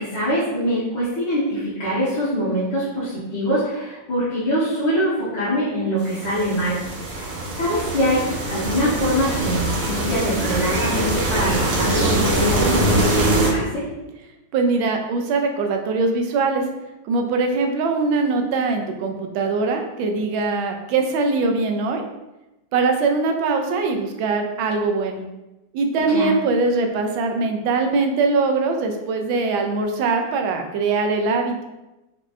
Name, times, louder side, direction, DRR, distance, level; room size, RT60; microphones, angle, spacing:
voice 1, 0.0-8.2 8.5-13.9 26.1-26.3, equal, 65° left, -12 dB, 1.9 m, -24 dB
sound 1, 6.0-13.5, right 1 dB, 55° right, 1.1 m, -22 dB
voice 2, 14.5-16.6 17.0-22.0 22.7-25.2 25.7-31.6, right 3 dB, 85° right, 4 dB, 1.4 m, -22 dB
5.2 x 3.2 x 2.5 m, 1.0 s
omnidirectional pair, 2.1 m